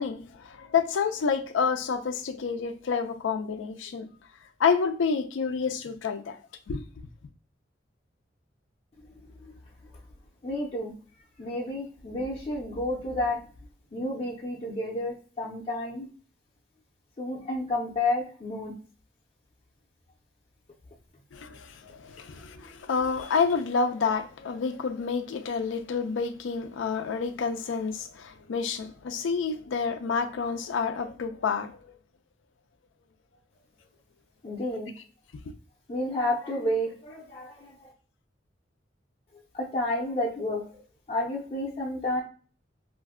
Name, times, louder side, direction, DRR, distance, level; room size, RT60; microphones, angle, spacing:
voice 1, 0.0-4.1 4.6-6.4 6.7-6.8 21.3-31.9 35.0-35.1, left 5 dB, 90° left, 0.4 m, -29 dB
voice 2, 10.4-10.9 11.4-13.4 13.9-16.1 17.2-18.7 34.4-34.9 35.9-37.9 39.5-40.6 41.1-42.2, left 1 dB, 35° left, 0.5 m, -30 dB
2.5 x 2.1 x 3.6 m
head